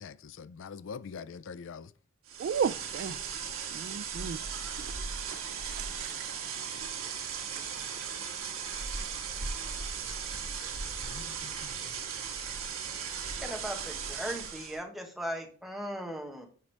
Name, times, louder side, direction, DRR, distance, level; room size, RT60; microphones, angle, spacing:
voice 1, 0.0-1.9 11.1-12.0, left 5 dB, 65° left, 0.4 m, -44 dB
sound 1, 2.3-14.8, right 6 dB, 90° right, 1.4 m, -37 dB
voice 2, 2.4-3.2 3.7-4.4 4.8-4.9 5.3-5.4 5.7-6.2, right 7 dB, 55° right, 0.3 m, -34 dB
voice 3, 13.4-16.5, equal, ahead, 1.3 m, -38 dB
8.7 x 5.3 x 3.3 m
head